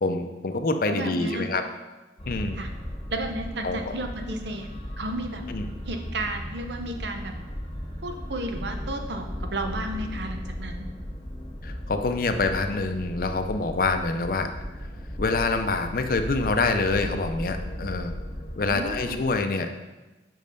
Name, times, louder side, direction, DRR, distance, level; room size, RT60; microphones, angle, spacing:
voice 1, 0.0-1.6 2.3-2.6 3.6-3.9 5.5-5.7 11.6-14.5 15.2-18.1 18.6-19.7, left 3 dB, 50° left, 7 dB, 0.5 m, -26 dB
voice 2, 0.9-1.5 2.5-2.7 3.1-4.7 5.0-5.4 5.9-7.3 8.0-10.8 18.6-19.2, right 1 dB, 70° right, 5 dB, 0.8 m, -33 dB
sound 1, 2.2-19.3, equal, 25° left, 1.0 m, -36 dB
5.5 x 5.3 x 5.2 m, 1.1 s
head